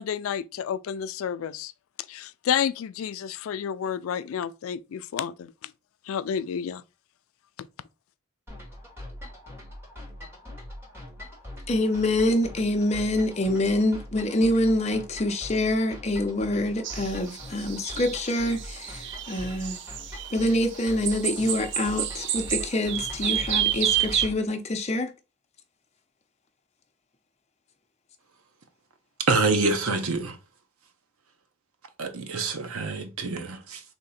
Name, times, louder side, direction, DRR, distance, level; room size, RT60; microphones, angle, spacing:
voice 1, 0.0-1.7 2.1-5.7 6.1-6.8 7.6-7.7, left 8 dB, 75° left, 0.3 m, -30 dB
sound 1, 8.5-24.3, left 1 dB, 10° right, 1.5 m, -42 dB
voice 2, 11.7-19.8 20.3-25.1, left 1 dB, 30° left, 0.6 m, -26 dB
sound 2, 16.8-24.3, right 11 dB, 55° right, 0.4 m, -29 dB
voice 3, 29.2-30.4 32.0-33.8, right 3 dB, 85° right, 0.8 m, -26 dB
3.5 x 2.8 x 4.1 m
head